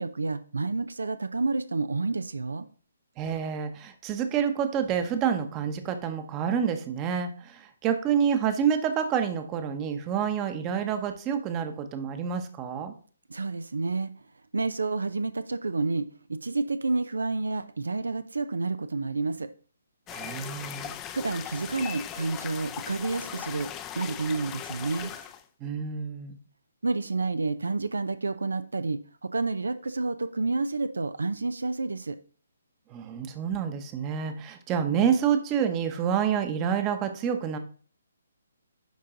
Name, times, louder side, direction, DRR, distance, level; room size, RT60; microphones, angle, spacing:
voice 1, 0.0-2.7 13.3-14.1 14.5-19.5 21.1-23.7 24.0-25.1 26.8-32.2, right 3 dB, 80° right, 12 dB, 0.5 m, -29 dB
voice 2, 3.2-12.9 20.1-20.9 25.6-26.4 32.9-37.6, right 7 dB, 25° right, 8 dB, 0.9 m, -28 dB
sound 1, 20.1-25.4, left 10 dB, 20° left, 0.5 m, -39 dB
10.5 x 3.8 x 3.8 m, 0.43 s
figure-of-eight pair, 140°, 0 cm